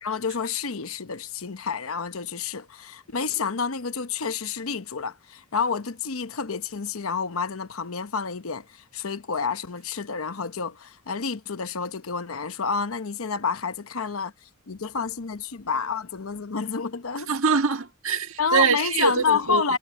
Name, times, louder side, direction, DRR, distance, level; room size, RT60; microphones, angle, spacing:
voice 1, 0.0-17.3 18.4-19.8, left 5 dB, 80° left, 0.9 m, -29 dB
voice 2, 17.3-19.6, right 5 dB, 75° right, 1.6 m, -23 dB
head